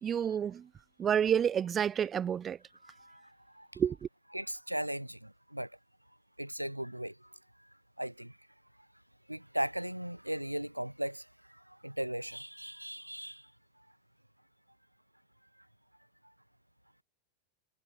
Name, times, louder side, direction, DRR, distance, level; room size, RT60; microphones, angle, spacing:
voice 1, 0.0-0.7 1.0-2.6 3.8-4.0, right 8 dB, 25° right, 0.3 m, -29 dB
voice 2, 2.8-3.3 3.6-3.7 4.3-5.7 6.4-7.1 8.0-8.3 9.3-13.4, right 1 dB, 90° right, 0.4 m, -37 dB
figure-of-eight pair, 90°, 0 cm